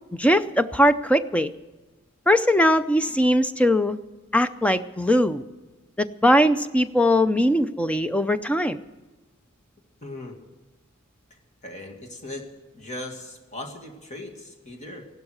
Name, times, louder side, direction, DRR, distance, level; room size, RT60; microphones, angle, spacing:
voice 1, 0.1-1.5 2.3-4.0 4.3-5.4 6.0-8.8, equal, 5° left, 11 dB, 0.5 m, -20 dB
voice 2, 10.0-10.4 11.3-12.5 12.7-15.1, left 1 dB, 35° left, 3 dB, 2.1 m, -38 dB
16.0 x 12.0 x 6.5 m, 1.2 s
head